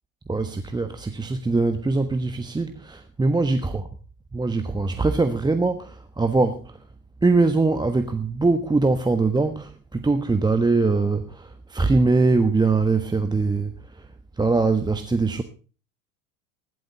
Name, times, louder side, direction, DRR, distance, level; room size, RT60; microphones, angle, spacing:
voice 1, 0.3-3.9 4.3-6.7 7.2-13.7 14.4-15.4, right 3 dB, 10° right, 1.2 m, -22 dB
15.5 x 12.0 x 3.9 m
hypercardioid pair, 80°, 42 cm